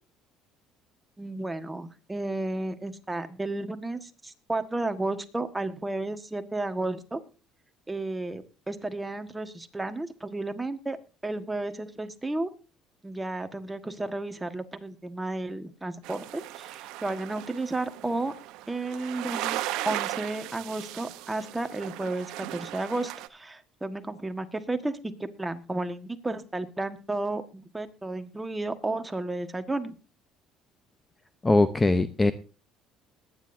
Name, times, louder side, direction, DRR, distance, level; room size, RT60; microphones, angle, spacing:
voice 1, 1.2-7.2 7.9-11.0 11.2-12.5 13.0-18.3 18.7-29.9, right 2 dB, 10° right, 8 dB, 1.5 m, -33 dB
sound 1, 16.0-23.3, right 15 dB, 80° right, 0.9 m, -37 dB
voice 2, 31.4-32.3, left 2 dB, 15° left, 12 dB, 0.8 m, -21 dB
21.5 x 9.9 x 2.7 m, 0.34 s
cardioid pair, 105°, 0 cm